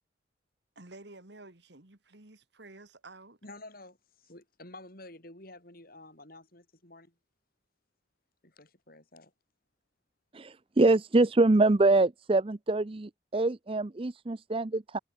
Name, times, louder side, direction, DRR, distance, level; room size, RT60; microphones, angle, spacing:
voice 1, 0.8-3.4, right 2 dB, 60° right, 2.0 m, -51 dB
voice 2, 3.4-7.1 8.4-9.3, left 2 dB, 50° left, 7.4 m, -50 dB
voice 3, 10.3-15.0, right 2 dB, 30° right, 0.5 m, -25 dB
head